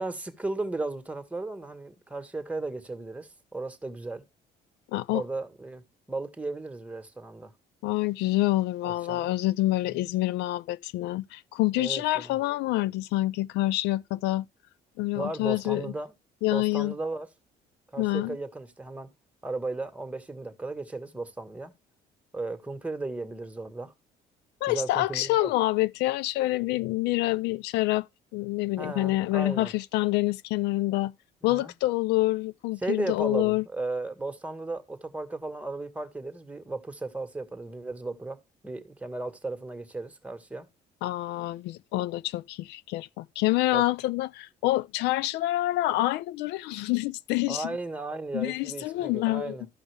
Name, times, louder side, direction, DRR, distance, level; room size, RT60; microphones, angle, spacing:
voice 1, 0.0-4.2 5.1-5.8 6.1-7.5 8.8-9.3 9.8-10.1 11.8-12.4 15.1-16.1 16.5-17.3 17.9-19.1 19.4-21.7 22.3-23.9 24.7-25.5 28.8-29.7 31.4-31.7 32.8-40.7 43.7-43.8 47.5-49.7, right 2 dB, 10° right, 1.5 m, -35 dB
voice 2, 4.9-5.2 7.8-14.4 15.0-15.9 16.4-16.9 18.0-18.4 24.6-28.1 28.3-31.1 31.4-33.6 41.0-47.7 48.3-49.6, left 17 dB, 90° left, 0.5 m, -27 dB
14.0 x 5.5 x 3.3 m
cardioid pair, 110°, 17 cm